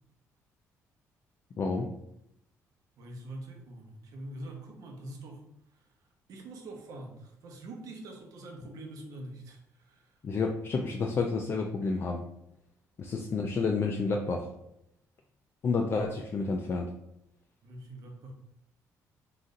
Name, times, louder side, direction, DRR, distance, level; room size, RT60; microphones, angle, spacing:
voice 1, 1.6-1.9 10.2-12.2 13.0-14.5 15.6-16.9, left 4 dB, 40° left, 2 dB, 0.4 m, -30 dB
voice 2, 3.0-10.2 16.0-16.3 17.6-18.3, right 1 dB, 75° right, 2 dB, 0.9 m, -45 dB
3.9 x 2.5 x 3.8 m, 0.79 s
cardioid pair, 115°, 6 cm